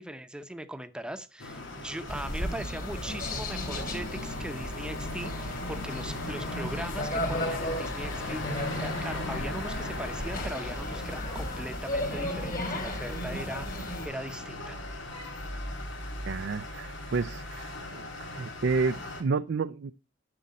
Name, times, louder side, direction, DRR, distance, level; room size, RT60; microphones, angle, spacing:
voice 1, 0.0-14.8, right 1 dB, 5° right, 10 dB, 0.8 m, -40 dB
sound 1, 1.4-19.2, left 2 dB, 90° left, 3.3 m, -39 dB
sound 2, 2.1-14.1, left 1 dB, 50° left, 3.2 m, -35 dB
voice 2, 16.3-19.9, right 4 dB, 65° right, 11 dB, 0.4 m, -31 dB
10.5 x 7.3 x 4.2 m, 0.32 s
head